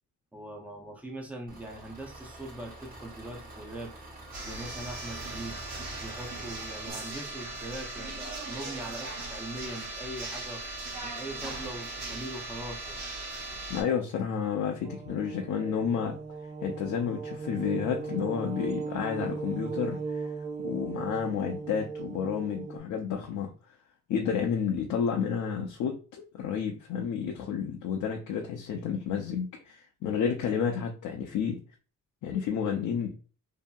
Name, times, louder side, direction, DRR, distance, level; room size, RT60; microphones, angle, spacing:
voice 1, 0.3-3.9 4.4-5.6 6.0-10.6 11.0-13.0, right 1 dB, 5° right, 1 dB, 0.5 m, -41 dB
Engine, 1.5-6.9, right 1 dB, 25° right, 0.8 m, -46 dB
sound 1, 4.3-13.8, right 2 dB, 55° right, 0.9 m, -38 dB
voice 2, 13.7-16.2 16.6-20.3 20.6-23.5 24.1-31.6 32.2-33.1, left 7 dB, 60° left, 2 dB, 0.5 m, -31 dB
sound 2, 14.8-22.8, right 4 dB, 80° right, 0.9 m, -37 dB
2.7 x 2.6 x 2.2 m, 0.37 s
cardioid pair, 135°, 33 cm